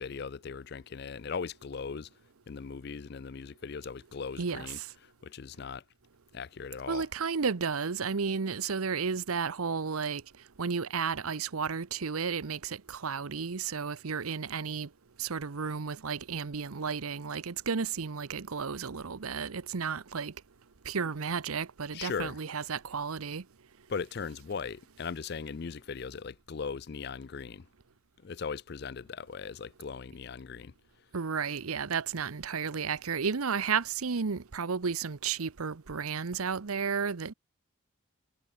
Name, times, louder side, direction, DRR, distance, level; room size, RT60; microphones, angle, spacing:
voice 1, 0.0-2.1 2.5-5.8 6.3-7.1 21.9-22.4 23.9-27.7 28.2-30.7, left 5 dB, 50° left, 0.4 m, -39 dB
voice 2, 4.4-4.9 6.9-10.2 10.6-14.9 15.2-20.3 20.8-23.4 31.1-37.3, right 5 dB, 90° right, 0.8 m, -33 dB
head